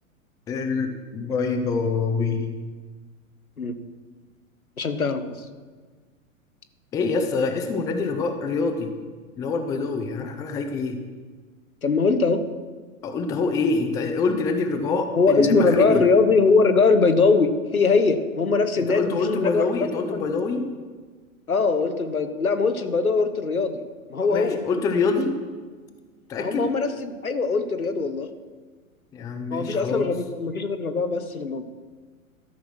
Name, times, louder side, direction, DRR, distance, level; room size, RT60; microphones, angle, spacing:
voice 1, 0.5-2.5 6.9-8.9 9.4-11.0 13.0-16.0 18.9-20.6 24.3-25.4 26.3-26.7 29.1-30.1, left 4 dB, 10° left, 6 dB, 0.5 m, -25 dB
voice 2, 4.8-5.2 11.8-12.4 15.1-20.3 21.5-23.8 24.1-24.6 26.4-28.3 29.5-31.6, left 4 dB, 80° left, 9 dB, 1.0 m, -21 dB
13.0 x 6.0 x 6.3 m, 1.5 s
figure-of-eight pair, 100°, 42 cm